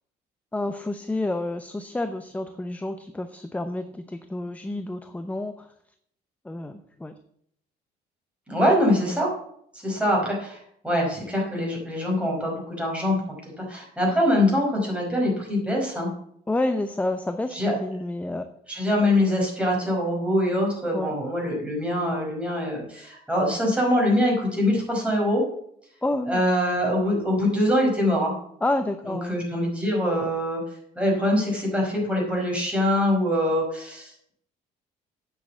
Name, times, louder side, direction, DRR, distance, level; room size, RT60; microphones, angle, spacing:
voice 1, 0.5-5.7 6.4-7.1 16.5-17.5 17.8-18.5 20.9-21.1 26.0-26.4 28.6-29.4, left 2 dB, 10° left, 9 dB, 0.7 m, -29 dB
voice 2, 8.5-9.3 9.7-10.6 10.8-13.2 13.6-16.1 17.5-17.8 18.7-25.4 26.3-28.3 29.1-30.6 31.0-34.3, left 1 dB, 5° right, -2 dB, 5.3 m, -24 dB
8.7 x 6.6 x 7.1 m, 0.69 s
cardioid pair, 110°, 17 cm